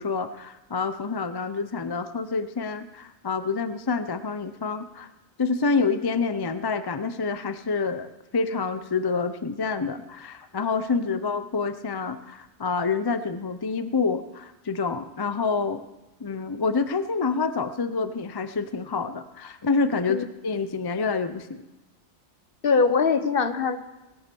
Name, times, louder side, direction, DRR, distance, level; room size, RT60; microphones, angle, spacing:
voice 1, 0.0-5.1 5.4-15.8 16.2-21.6, left 4 dB, 30° left, 11 dB, 0.5 m, -27 dB
voice 2, 22.6-23.8, left 5 dB, 50° left, 10 dB, 1.1 m, -22 dB
19.5 x 8.8 x 6.9 m, 1.0 s
omnidirectional pair, 1.2 m